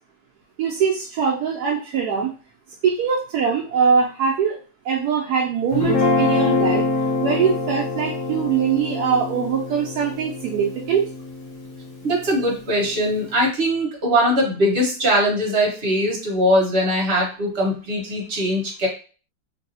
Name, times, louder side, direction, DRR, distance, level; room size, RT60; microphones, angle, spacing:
voice 1, 0.6-2.3 2.8-4.6 4.8-6.8 7.2-11.1, right 6 dB, 75° right, -2 dB, 1.1 m, -22 dB
Guitar, 5.7-12.0, left 3 dB, 60° left, 1.1 m, -24 dB
voice 2, 12.0-18.9, equal, 40° right, -3 dB, 1.3 m, -21 dB
3.2 x 2.7 x 2.7 m, 0.37 s
omnidirectional pair, 1.7 m